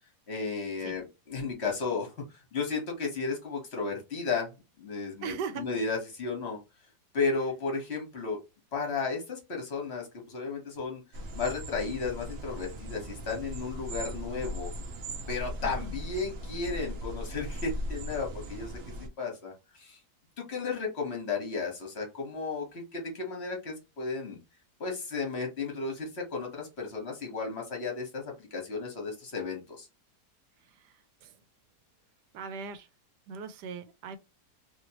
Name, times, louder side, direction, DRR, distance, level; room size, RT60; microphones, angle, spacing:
voice 1, 0.3-2.1 2.5-6.6 7.1-8.4 8.7-11.0 11.3-14.7 15.3-18.8 19.2-20.0 20.4-24.4 24.8-29.9, left 4 dB, 45° left, 1.4 m, -34 dB
voice 2, 5.2-5.6 15.6-15.9 32.3-32.9 33.3-34.2, right 6 dB, 90° right, 1.2 m, -38 dB
sound 1, 11.1-19.1, equal, 65° right, 0.6 m, -38 dB
3.0 x 2.9 x 2.8 m
omnidirectional pair, 1.8 m